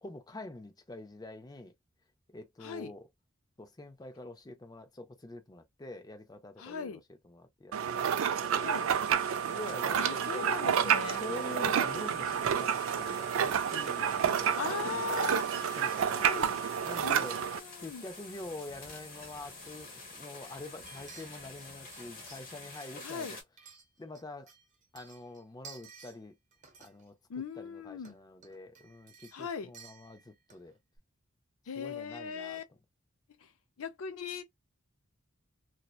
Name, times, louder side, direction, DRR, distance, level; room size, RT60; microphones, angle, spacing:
voice 1, 0.0-1.7 2.3-3.1 3.6-8.1 8.6-9.0 9.4-10.9 11.2-15.3 15.8-16.3 16.8-17.4 17.8-23.4 24.0-24.5 24.9-26.4 26.8-30.8 31.8-32.6, left 2 dB, 20° left, 0.5 m, -46 dB
voice 2, 2.6-2.9 6.6-7.0 8.4-8.9 9.9-11.2 14.6-15.4 16.2-16.6 17.0-18.0 23.0-23.4 27.3-28.2 29.3-29.7 31.7-32.6 33.4-33.5 33.8-34.4, left 6 dB, 80° left, 0.5 m, -39 dB
sound 1, 7.7-17.6, right 8 dB, 70° right, 0.4 m, -30 dB
sound 2, 8.5-23.4, left 3 dB, 45° left, 1.1 m, -49 dB
sound 3, 20.9-22.6 23.0-24.2 24.5-26.2 26.5-27.1 28.0-28.1 28.4-30.7 31.0-31.1, right 6 dB, 40° right, 0.8 m, -54 dB
2.7 x 2.1 x 2.3 m
head